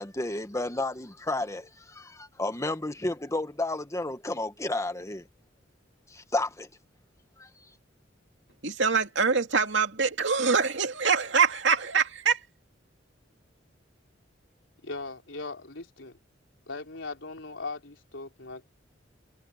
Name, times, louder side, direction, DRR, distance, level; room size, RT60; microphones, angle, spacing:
voice 1, 0.0-5.3 6.1-6.7 7.4-7.5, left 2 dB, 15° left, 1.4 m, -32 dB
voice 2, 8.6-12.4, right 5 dB, 70° right, 2.6 m, -24 dB
voice 3, 14.8-16.2 16.7-18.7, left 3 dB, 90° left, 3.7 m, -39 dB
head